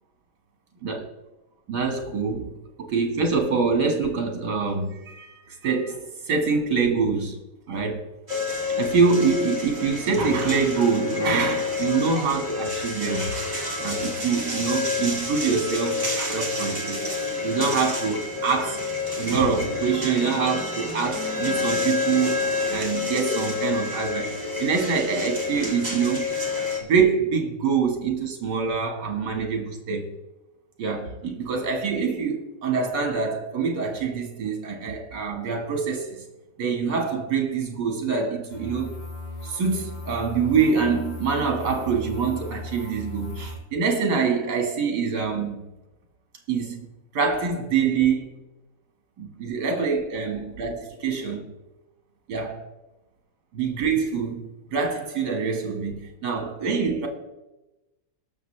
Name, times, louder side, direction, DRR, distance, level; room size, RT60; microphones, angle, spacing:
voice 1, 1.7-2.5 2.8-7.4 7.7-8.1 8.8-13.3 13.8-18.8 19.1-22.4 22.7-26.4 26.9-30.1 30.8-36.2 36.6-38.9 39.4-45.7 46.5-46.9 47.1-48.3 49.2-51.5 52.3-52.6 53.5-57.1, right 5 dB, 70° right, 2.3 m, -25 dB
sound 1, 8.3-26.8, left 3 dB, 25° right, 2.3 m, -29 dB
sound 2, 38.5-43.6, left 2 dB, 75° left, 3.2 m, -37 dB
19.0 x 6.6 x 3.3 m
omnidirectional pair, 1.8 m